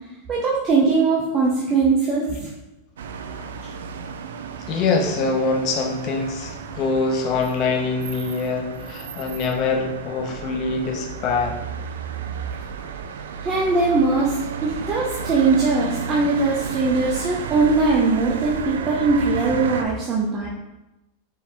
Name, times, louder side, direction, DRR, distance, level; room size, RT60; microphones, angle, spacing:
voice 1, 0.3-2.5 12.8-12.9 13.4-14.4 14.6-20.5, right 3 dB, 25° right, -4 dB, 0.7 m, -20 dB
sound 1, 3.0-19.9, right 5 dB, 90° right, 0.3 m, -33 dB
voice 2, 4.7-11.6, left 4 dB, 40° left, 3 dB, 0.7 m, -24 dB
4.6 x 2.8 x 3.4 m, 0.97 s
supercardioid pair, 130°, 0 cm